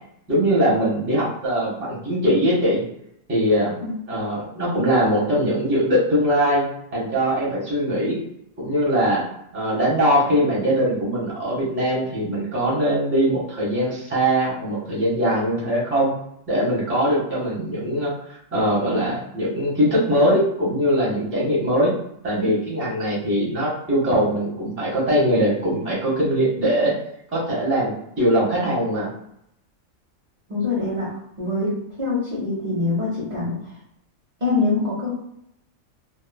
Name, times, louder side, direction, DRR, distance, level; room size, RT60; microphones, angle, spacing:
voice 1, 0.3-2.8 3.3-3.7 4.1-8.2 8.6-9.2 9.5-16.1 16.5-18.1 18.5-21.9 22.2-26.9 27.3-29.1, equal, 10° right, -7 dB, 0.9 m, -21 dB
voice 2, 30.5-31.1 31.4-31.7 32.0-33.6 34.4-35.1, left 3 dB, 35° right, -9 dB, 1.0 m, -24 dB
3.0 x 2.4 x 2.2 m, 0.75 s
omnidirectional pair, 1.4 m